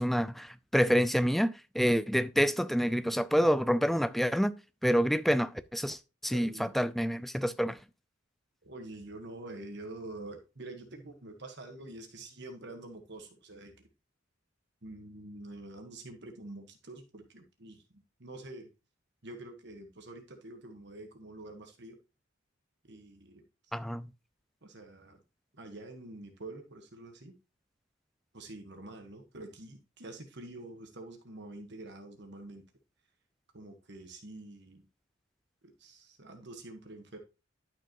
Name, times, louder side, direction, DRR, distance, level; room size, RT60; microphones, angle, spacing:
voice 1, 0.0-4.5 4.8-7.8 23.7-24.1, equal, ahead, 0.4 m, -28 dB
voice 2, 6.3-6.7 8.6-13.9 14.8-18.7 19.2-22.0 22.8-23.4 24.6-25.2 25.5-27.3 28.3-32.6 33.5-34.8 35.6-37.2, right 2 dB, 55° right, 1.4 m, -46 dB
11.5 x 6.0 x 3.0 m
head